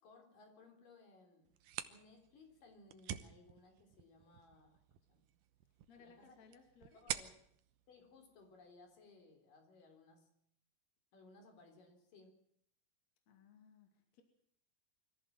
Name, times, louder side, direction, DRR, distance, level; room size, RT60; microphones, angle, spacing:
voice 1, 0.0-1.5 1.9-5.3 5.9-6.4 7.0-7.3 7.9-10.3 11.1-12.3, left 3 dB, 75° left, 5 dB, 5.3 m, -62 dB
sound 1, 1.5-9.0, right 11 dB, 75° right, 2.4 m, -49 dB
voice 2, 5.9-7.1 13.3-14.2, left 5 dB, 55° left, 4 dB, 3.5 m, -63 dB
24.5 x 14.5 x 7.5 m, 0.72 s
omnidirectional pair, 3.9 m